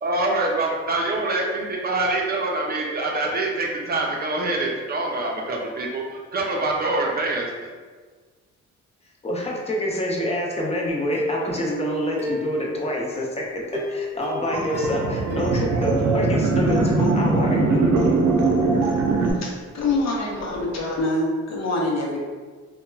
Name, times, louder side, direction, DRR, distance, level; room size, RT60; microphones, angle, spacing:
voice 1, 0.0-6.0 6.3-7.7, right 2 dB, 30° right, -1 dB, 0.5 m, -25 dB
voice 2, 9.2-17.8, left 1 dB, 20° left, -2 dB, 0.5 m, -27 dB
Plucked string instrument, 11.1-13.1 13.7-16.5 16.8-16.9 17.3-17.4, equal, 5° right, 0.8 m, -31 dB
sound 1, 14.5-19.3, right 3 dB, 80° right, 0.5 m, -21 dB
voice 3, 19.3-22.2, left 2 dB, 60° left, -2 dB, 0.7 m, -25 dB
2.8 x 2.2 x 2.2 m, 1.5 s
cardioid pair, 90°, 30 cm